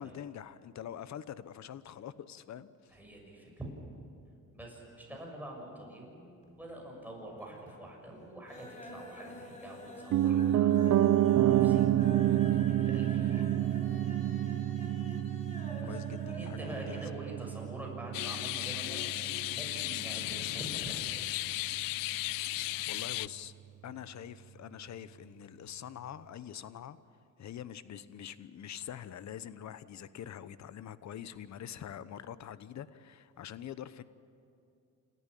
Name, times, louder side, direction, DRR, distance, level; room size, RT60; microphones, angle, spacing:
voice 1, 0.0-3.0 10.0-10.3 13.2-13.5 15.1-15.3 15.8-17.1 22.9-23.5 23.8-27.0 27.4-34.0, left 10 dB, 55° left, 15 dB, 1.0 m, -45 dB
voice 2, 2.9-3.7 4.5-12.0 12.6-13.4 15.8-16.0 16.3-21.2, right 1 dB, 5° right, -1 dB, 6.7 m, -46 dB
sound 1, 6.4-7.0 7.3-7.9 8.2-17.2 17.5-17.6 17.9-18.0, left 1 dB, 20° left, 3.9 m, -47 dB
Piano, 10.1-20.1 20.4-20.5, right 12 dB, 60° right, 0.5 m, -28 dB
sound 2, 18.1-23.3, left 18 dB, 80° left, 0.5 m, -35 dB
28.0 x 14.0 x 10.0 m, 2.6 s
cardioid pair, 105°, 33 cm